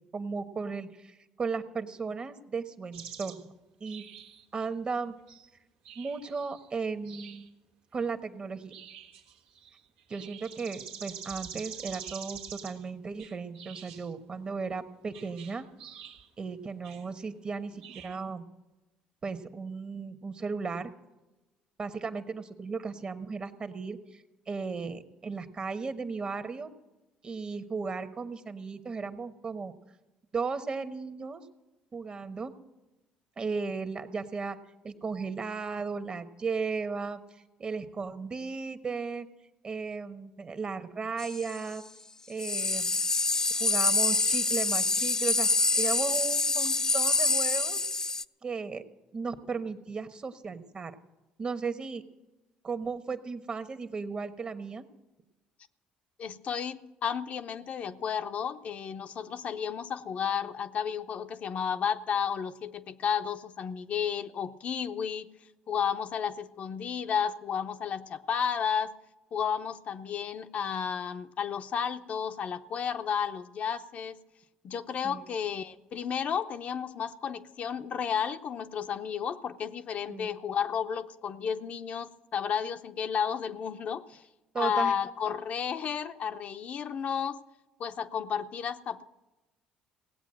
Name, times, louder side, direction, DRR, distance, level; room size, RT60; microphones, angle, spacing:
voice 1, 0.1-3.5 3.8-4.0 4.5-5.2 5.9-7.5 7.9-8.8 10.1-15.7 16.4-18.4 19.2-20.9 21.8-26.7 27.2-29.7 30.3-31.4 31.9-32.5 33.4-34.6 34.8-37.2 37.6-39.3 39.6-41.8 42.3-42.9 43.6-45.5 45.8-47.8 48.4-48.8 49.1-50.9 51.4-52.0 52.6-54.8 75.0-75.2 80.1-80.3 84.5-84.9, right 4 dB, 35° right, 9 dB, 1.2 m, -35 dB
sound 1, 2.9-3.4 3.9-4.6 5.3-5.5 5.8-6.7 7.0-7.5 8.7-12.9 13.2-14.1 15.1-16.3 16.8-17.1 17.7-18.2, right 8 dB, 90° right, 1.4 m, -46 dB
sound 2, 41.2-41.6 42.4-48.2, left 3 dB, 20° left, 0.4 m, -26 dB
voice 2, 56.2-65.3 65.7-68.9 69.3-74.2 74.6-84.3 84.6-87.4 87.8-89.0, left 7 dB, 55° left, 8 dB, 0.7 m, -32 dB
17.5 x 8.3 x 7.6 m, 1.1 s
supercardioid pair, 85°, 3 cm